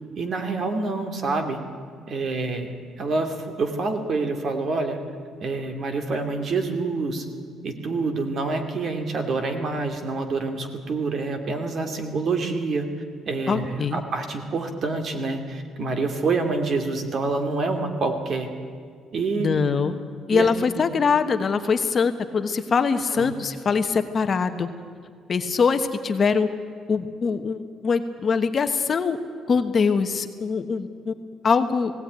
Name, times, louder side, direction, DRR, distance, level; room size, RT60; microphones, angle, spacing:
voice 1, 0.2-1.6 2.1-5.0 5.4-7.2 7.6-12.9 13.3-18.5 19.1-19.6 20.3-20.5 20.7-20.8 23.1-23.3, right 3 dB, 45° right, 6 dB, 2.4 m, -27 dB
voice 2, 13.5-14.0 19.4-20.0 20.3-24.7 25.3-26.5 26.9-29.2 29.5-31.1 31.4-31.9, left 5 dB, 35° left, 8 dB, 1.1 m, -23 dB
19.0 x 17.0 x 9.4 m, 2.1 s
cardioid pair, 135°, 0 cm